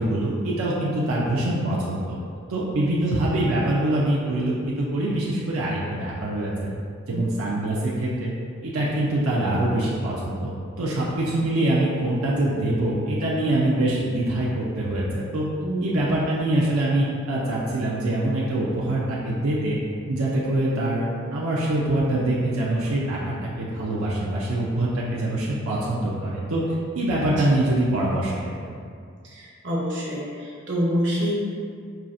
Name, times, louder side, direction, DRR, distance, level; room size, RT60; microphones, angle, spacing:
voice 1, 0.0-2.2 2.5-6.7 7.1-8.3 8.6-15.4 15.8-19.8 20.1-21.0 21.3-28.8, right 1 dB, 90° right, -5 dB, 0.5 m, -24 dB
voice 2, 29.2-31.3, equal, 55° right, -6 dB, 0.8 m, -27 dB
5.5 x 2.4 x 2.5 m, 2.2 s
head